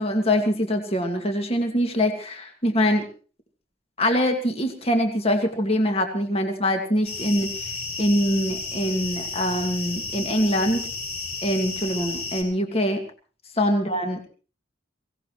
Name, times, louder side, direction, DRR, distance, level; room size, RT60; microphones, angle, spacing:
voice 1, 0.0-3.0 4.0-7.5 8.0-10.9 11.4-13.0 13.6-14.3, equal, 30° left, 4 dB, 2.2 m, -23 dB
sound 1, 7.0-12.4, left 3 dB, 55° left, 6.4 m, -32 dB
23.0 x 17.5 x 3.2 m, 0.38 s
head